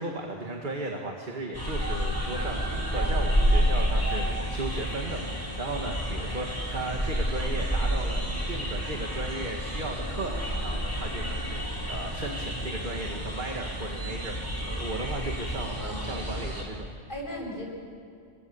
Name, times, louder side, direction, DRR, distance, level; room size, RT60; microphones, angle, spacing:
voice 1, 0.0-16.9, right 2 dB, 45° right, 2 dB, 2.2 m, -36 dB
sound 1, 1.5-16.6, equal, 20° left, 6.8 m, -29 dB
voice 2, 17.1-17.7, equal, 50° left, -2 dB, 7.8 m, -38 dB
29.5 x 24.0 x 7.2 m, 2.4 s
omnidirectional pair, 1.1 m